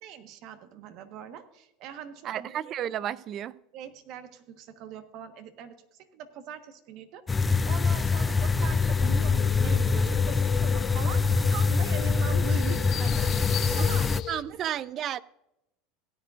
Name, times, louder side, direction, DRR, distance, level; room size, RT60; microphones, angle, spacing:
voice 1, 0.0-2.8 3.0-3.1 3.7-14.2 14.5-14.6, right 8 dB, 55° right, 1.3 m, -42 dB
voice 2, 2.2-3.5 14.3-15.2, right 10 dB, 40° right, 0.4 m, -32 dB
sound 1, 7.3-14.2, left 4 dB, 15° left, 0.4 m, -24 dB
sound 2, 8.6-14.4, left 12 dB, 50° left, 0.8 m, -36 dB
17.0 x 10.0 x 2.5 m
supercardioid pair, 115°, 0 cm